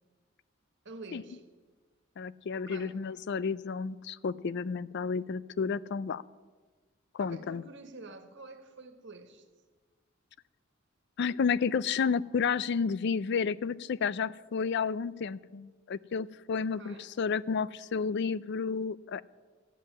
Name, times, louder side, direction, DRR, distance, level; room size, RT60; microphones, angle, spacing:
voice 1, 0.8-1.4 2.5-3.0 7.2-9.5 16.5-17.1, right 3 dB, 65° right, 8 dB, 1.5 m, -48 dB
voice 2, 2.2-6.2 7.1-7.6 11.2-19.2, left 5 dB, 60° left, 19 dB, 0.4 m, -31 dB
14.0 x 7.5 x 9.6 m, 1.4 s
head